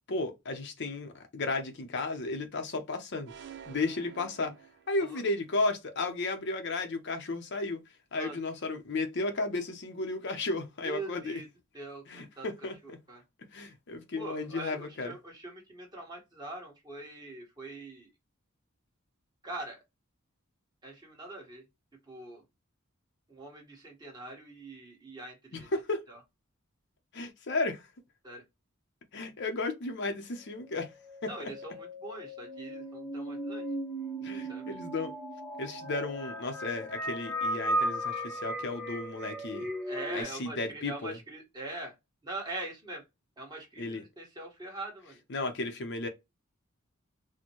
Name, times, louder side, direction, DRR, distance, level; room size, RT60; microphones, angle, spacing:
voice 1, 0.1-3.3 3.7-4.5 4.9-7.8 8.1-11.4 12.1-13.0 13.5-15.1 25.5-26.0 27.1-27.9 29.1-30.9 31.2-31.5 34.2-35.1 35.6-39.7 40.1-41.2 43.8-44.0 45.3-46.1, left 3 dB, 55° left, 0.7 m, -34 dB
sound 1, 3.3-5.3, right 8 dB, 55° right, 0.4 m, -49 dB
voice 2, 10.8-11.5 11.7-12.7 13.1-13.2 14.2-18.1 19.4-19.8 20.8-21.6 22.1-22.4 23.3-25.7 26.1-26.2 28.2-28.4 31.3-33.7 34.4-34.8 39.8-41.9 42.2-43.0 43.4-45.2, right 2 dB, 20° right, 1.4 m, -43 dB
sound 2, 30.6-40.2, right 1 dB, 5° left, 0.9 m, -36 dB
4.2 x 2.2 x 3.0 m
head